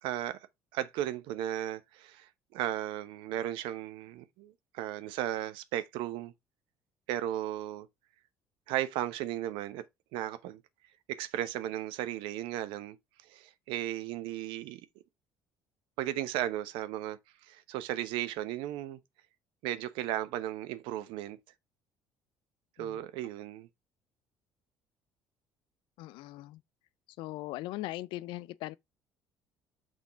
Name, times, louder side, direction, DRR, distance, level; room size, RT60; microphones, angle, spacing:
voice 1, 0.0-0.4 0.7-6.3 7.1-7.9 8.7-9.8 10.1-10.6 11.1-13.0 13.3-14.9 16.0-17.2 17.5-19.0 19.6-21.4 22.8-23.7, right 13 dB, 80° right, 0.8 m, -35 dB
voice 2, 26.0-26.6 27.2-28.8, left 17 dB, 75° left, 0.4 m, -39 dB
6.2 x 3.6 x 5.0 m
supercardioid pair, 70°, 8 cm